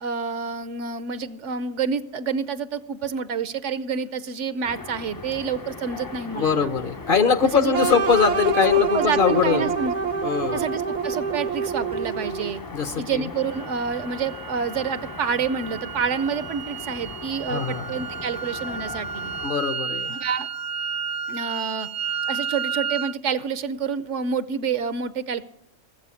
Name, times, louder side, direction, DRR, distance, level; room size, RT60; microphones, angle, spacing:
voice 1, 0.0-6.7 7.5-8.0 8.7-9.9 10.5-12.6 13.0-19.3 20.1-20.5 21.3-21.9 22.3-25.4, right 6 dB, 70° right, 14 dB, 1.1 m, -28 dB
sound 1, 4.6-19.5, left 3 dB, 25° left, 0.5 m, -39 dB
voice 2, 6.3-9.8 10.2-10.6 12.7-13.3 17.5-17.9 19.4-20.2, left 6 dB, 50° left, 11 dB, 0.8 m, -22 dB
sound 2, 7.7-12.7, right 6 dB, 45° right, 0.7 m, -26 dB
sound 3, 13.5-23.2, right 6 dB, 90° right, 1.2 m, -32 dB
19.5 x 7.8 x 8.3 m, 0.73 s
omnidirectional pair, 1.3 m